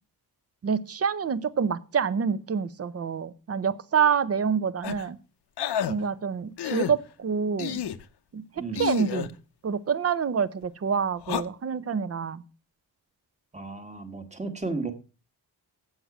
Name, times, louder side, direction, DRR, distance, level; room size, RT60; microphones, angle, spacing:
voice 1, 0.6-5.2 5.9-7.8 8.3-8.4 8.8-9.3 9.6-12.4, right 6 dB, 35° right, 14 dB, 0.6 m, -27 dB
sound 1, 4.8-5.1 5.6-5.9 6.6-6.9 7.6-8.0 8.8-9.3 11.2-11.4, left 10 dB, 75° left, 0.8 m, -30 dB
voice 2, 13.5-14.9, right 3 dB, 15° right, 7 dB, 1.3 m, -33 dB
8.0 x 7.8 x 6.0 m, 0.35 s
wide cardioid pair, 175°, 41 cm